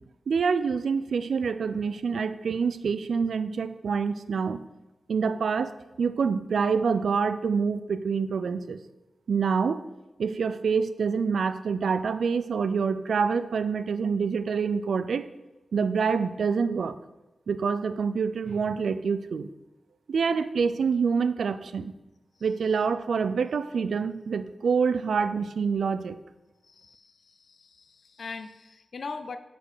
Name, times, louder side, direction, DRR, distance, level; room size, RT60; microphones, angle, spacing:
voice 1, 0.3-4.7 5.1-8.8 9.3-9.8 10.2-15.3 15.7-17.0 17.5-19.5 20.1-21.9 22.4-26.2, right 5 dB, 80° right, 12 dB, 0.3 m, -26 dB
voice 2, 26.6-29.4, left 4 dB, 55° left, 9 dB, 0.4 m, -41 dB
6.4 x 5.1 x 4.9 m, 1.0 s
wide cardioid pair, 170°, 0 cm